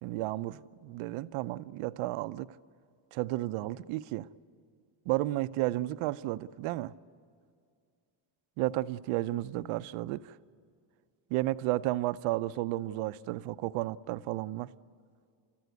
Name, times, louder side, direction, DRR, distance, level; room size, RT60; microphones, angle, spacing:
voice 1, 0.0-2.5 3.1-4.3 5.1-6.9 8.6-10.4 11.3-14.7, right 17 dB, 80° right, 0.7 m, -32 dB
28.5 x 14.5 x 9.4 m
cardioid pair, 165°, 49 cm